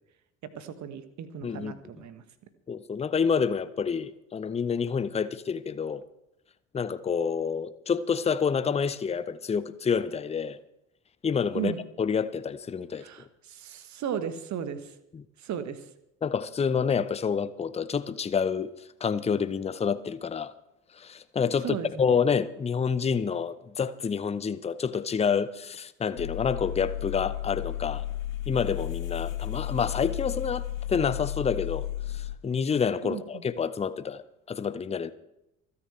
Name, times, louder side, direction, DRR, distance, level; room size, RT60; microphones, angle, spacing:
voice 1, 0.5-2.2 11.5-11.8 12.9-15.0 15.4-15.9 21.6-22.1 33.0-33.4, right 8 dB, 45° right, 1.4 m, -36 dB
voice 2, 1.4-1.7 2.7-6.0 6.7-10.6 11.2-11.7 12.0-13.0 15.1-15.2 16.2-18.7 19.0-20.5 21.0-28.0 28.5-31.9 32.1-35.1, left 6 dB, 15° left, 0.7 m, -28 dB
sound 1, 26.2-32.4, left 13 dB, 80° left, 0.7 m, -33 dB
27.5 x 9.8 x 3.3 m
figure-of-eight pair, 55°, 39 cm